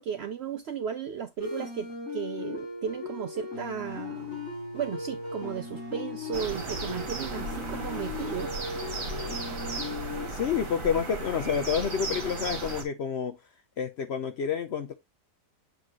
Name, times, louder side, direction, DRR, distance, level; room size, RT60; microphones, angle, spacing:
voice 1, 0.0-4.4 4.7-8.5, right 8 dB, 90° right, 0.5 m, -35 dB
sound 1, 1.4-10.3, left 3 dB, 40° left, 3.4 m, -38 dB
sound 2, 6.3-12.8, right 3 dB, 50° right, 2.3 m, -35 dB
voice 2, 10.3-13.4 13.8-14.9, left 7 dB, 65° left, 0.6 m, -29 dB
7.7 x 4.7 x 2.8 m
omnidirectional pair, 1.7 m